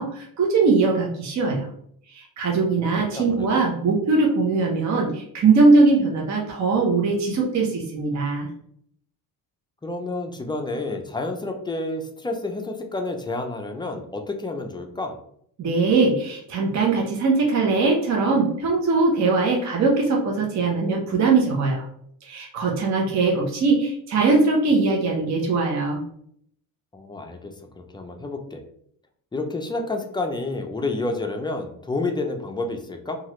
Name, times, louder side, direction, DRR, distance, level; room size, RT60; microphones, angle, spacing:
voice 1, 0.0-1.7 2.1-8.5 15.6-21.8 22.2-26.0, right 3 dB, 45° right, -1 dB, 0.7 m, -21 dB
voice 2, 3.1-3.6 9.8-15.2 26.9-27.5 27.9-28.6 29.3-33.2, left 2 dB, 10° left, 4 dB, 0.4 m, -29 dB
2.9 x 2.4 x 2.9 m, 0.67 s
cardioid pair, 95°, 38 cm